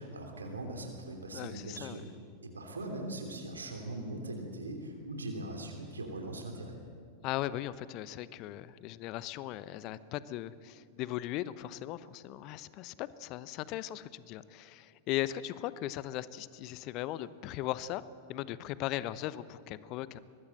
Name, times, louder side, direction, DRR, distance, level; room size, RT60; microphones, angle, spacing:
voice 1, 0.0-2.1 2.4-6.8, right 1 dB, 75° right, 3 dB, 3.1 m, -40 dB
voice 2, 1.3-2.0 7.2-18.0 18.3-20.2, left 14 dB, 40° left, 17 dB, 0.9 m, -38 dB
23.5 x 20.5 x 7.8 m, 2.3 s
figure-of-eight pair, 90°, 0 cm